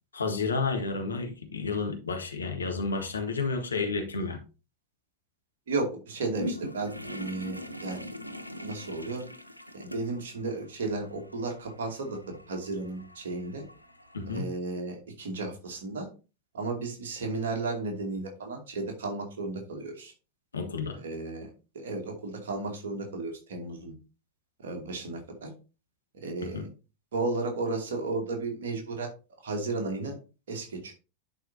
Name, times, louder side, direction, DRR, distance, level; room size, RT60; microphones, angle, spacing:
voice 1, 0.1-4.4 14.1-14.5 20.5-21.0 26.4-26.7, left 4 dB, 75° left, 1.5 m, -31 dB
voice 2, 5.7-8.0 8.6-9.2 9.7-13.6 14.2-16.1 16.5-20.1 21.0-21.5 21.7-23.9 24.6-25.5 26.1-26.6 27.1-29.1 29.4-30.2 30.5-30.9, right 3 dB, 60° right, 2.5 m, -34 dB
sound 1, 6.4-14.4, equal, 90° right, 0.6 m, -42 dB
11.0 x 4.8 x 2.8 m
figure-of-eight pair, 90°, 0 cm